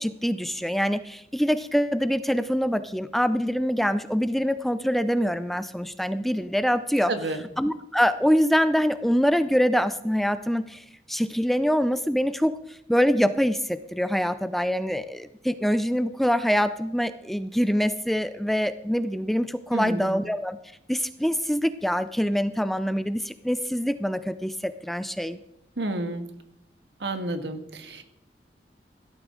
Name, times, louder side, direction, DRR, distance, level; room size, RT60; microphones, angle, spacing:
voice 1, 0.0-7.1 7.6-20.6 20.9-25.4, equal, ahead, 12 dB, 0.4 m, -25 dB
voice 2, 7.1-7.4 19.7-20.2 25.8-26.3 27.0-28.0, right 2 dB, 75° right, 7 dB, 1.6 m, -30 dB
17.0 x 12.5 x 3.9 m, 0.80 s
head